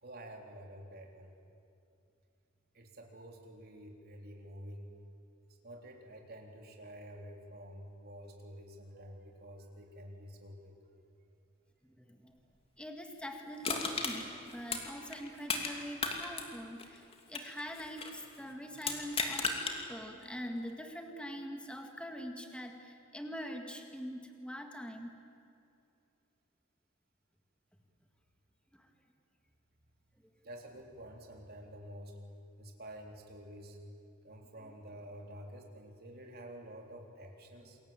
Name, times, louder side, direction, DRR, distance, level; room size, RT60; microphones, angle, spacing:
voice 1, 0.0-1.3 2.7-4.9 5.6-10.8 30.4-32.2 32.6-33.8 34.2-37.8, equal, 45° right, 2 dB, 3.6 m, -49 dB
voice 2, 12.0-12.4 12.8-25.1 28.8-28.9 34.6-34.7, equal, 5° left, 4 dB, 1.9 m, -44 dB
Crushing, 13.6-15.7 16.0-18.2 18.8-19.8 20.2-20.3, left 4 dB, 30° left, 2.7 m, -35 dB
28.0 x 22.0 x 9.0 m, 2.6 s
head